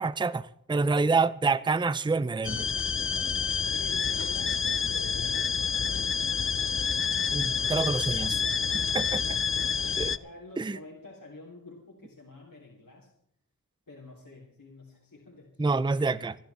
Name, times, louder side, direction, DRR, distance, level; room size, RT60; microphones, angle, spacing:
voice 1, 0.0-2.7 7.3-8.4 8.9-9.2 10.0-10.1 10.6-10.8 15.6-16.4, right 4 dB, 15° right, 0.5 m, -27 dB
sound 1, 2.4-10.2, left 6 dB, 40° left, 0.5 m, -28 dB
voice 2, 3.7-6.4 9.0-13.1 13.9-16.1, left 2 dB, 70° left, 3.6 m, -48 dB
28.5 x 10.5 x 3.6 m
wide cardioid pair, 65°, 34 cm